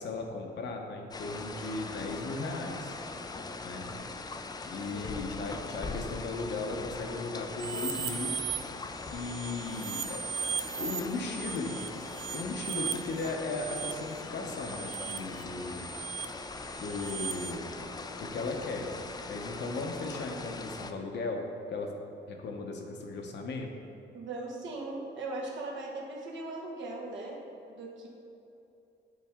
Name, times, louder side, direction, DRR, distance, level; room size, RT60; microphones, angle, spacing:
voice 1, 0.0-3.0 3.6-3.9 4.7-8.3 9.1-10.2 10.8-11.8 12.3-15.9 16.8-17.7 18.2-18.9 19.3-21.9 22.3-23.7, left 3 dB, 60° left, 2 dB, 0.9 m, -36 dB
sound 1, 1.1-20.9, left 3 dB, 20° left, 0.3 m, -41 dB
sound 2, 7.6-8.6 9.0-17.5, right 7 dB, 85° right, 0.4 m, -38 dB
voice 2, 24.1-27.4 27.7-28.1, right 2 dB, 70° right, -2 dB, 1.3 m, -39 dB
7.4 x 4.0 x 3.6 m, 2.7 s
cardioid pair, 90°, 20 cm